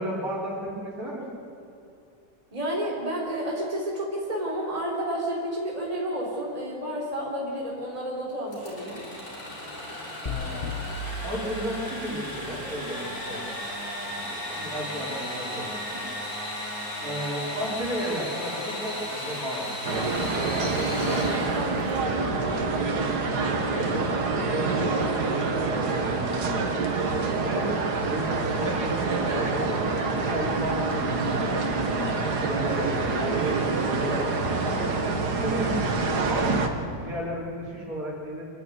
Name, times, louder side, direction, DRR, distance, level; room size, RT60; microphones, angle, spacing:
voice 1, 0.0-1.4 10.2-10.6 11.2-13.4 14.0-16.0 17.0-19.8 20.2-21.6 23.7-26.7 27.4-27.7 28.1-30.0 30.2-31.2 31.4-31.5 32.1-34.8 35.4-36.5 37.0-38.5, equal, 60° right, -4 dB, 4.9 m, -34 dB
voice 2, 2.5-9.0, right 1 dB, 20° right, -3 dB, 3.6 m, -30 dB
Engine / Sawing, 8.5-22.2, left 1 dB, 65° left, 4.7 m, -35 dB
sound 1, 10.3-12.4, left 3 dB, 30° left, 1.2 m, -35 dB
sound 2, 19.8-36.7, right 3 dB, 85° right, 2.2 m, -26 dB
27.0 x 11.0 x 9.6 m, 2.8 s
omnidirectional pair, 1.7 m